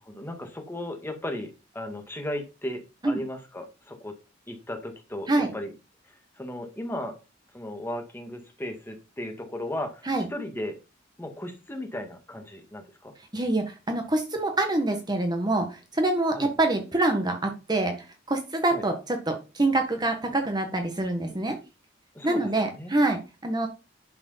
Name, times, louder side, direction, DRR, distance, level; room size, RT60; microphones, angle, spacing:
voice 1, 0.0-4.2 4.5-5.7 6.0-7.2 7.5-10.8 11.2-13.1 16.3-16.5 18.7-18.8 22.1-22.9, left 1 dB, 10° left, 4 dB, 1.9 m, -36 dB
voice 2, 13.3-18.0 18.3-21.6 22.2-23.7, right 2 dB, 20° right, 5 dB, 1.3 m, -25 dB
11.0 x 4.9 x 5.6 m, 0.29 s
head